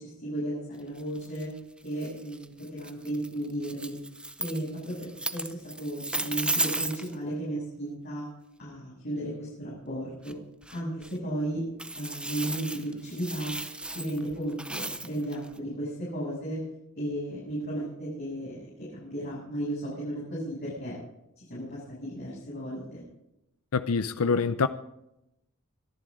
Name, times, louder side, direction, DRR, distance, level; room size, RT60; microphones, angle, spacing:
voice 1, 0.0-1.5 1.8-4.0 4.4-8.3 8.6-10.4 10.7-11.6 11.9-13.5 13.9-16.6 16.9-21.0 21.4-23.0, right 1 dB, 45° left, 7.7 m, -34 dB
sound 1, 1.0-7.2 10.3-10.4 10.6-11.2 11.8-15.6, right 2 dB, 5° right, 0.8 m, -35 dB
voice 2, 23.7-24.7, left 4 dB, 90° left, 0.6 m, -25 dB
25.5 x 11.0 x 3.8 m
head